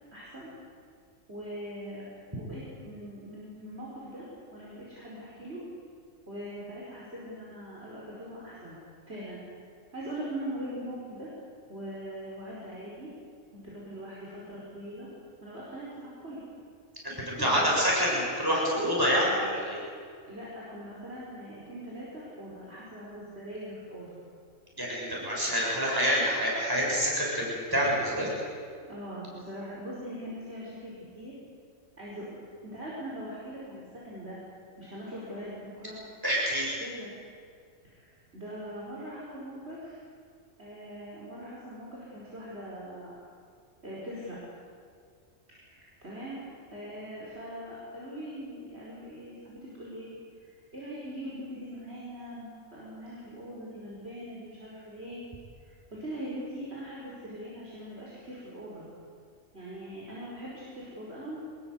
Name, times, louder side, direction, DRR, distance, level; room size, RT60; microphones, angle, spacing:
voice 1, 0.1-0.5 1.3-2.1 2.4-4.3 4.5-5.6 6.3-8.8 9.1-9.4 9.9-11.3 11.7-13.1 13.5-15.1 15.4-16.4 17.3-17.8 20.3-24.2 28.9-31.3 32.0-32.4 32.6-34.4 34.8-36.0 36.8-37.1 37.9-40.0 40.6-43.2 43.8-44.4 45.6-50.1 50.4-55.2 55.6-58.9 59.5-61.4, equal, 45° right, -6 dB, 5.2 m, -41 dB
voice 2, 17.0-19.8 24.8-28.3 36.2-36.7, equal, 15° right, -4 dB, 7.1 m, -27 dB
25.0 x 20.0 x 8.3 m, 2.2 s
omnidirectional pair, 1.4 m